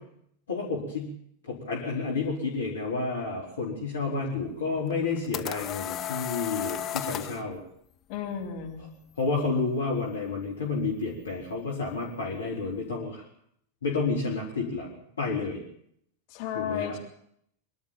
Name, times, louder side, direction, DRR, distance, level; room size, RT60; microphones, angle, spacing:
voice 1, 0.5-1.1 1.5-7.6 9.2-13.2 13.8-15.6 16.5-17.0, left 4 dB, 70° left, -3 dB, 4.6 m, -30 dB
sound 1, 4.9-7.4, left 11 dB, 30° left, 1.0 m, -34 dB
voice 2, 8.1-8.9 16.3-17.0, left 8 dB, 45° left, 2 dB, 3.3 m, -33 dB
24.5 x 12.5 x 9.0 m, 0.69 s
figure-of-eight pair, 90°, 0 cm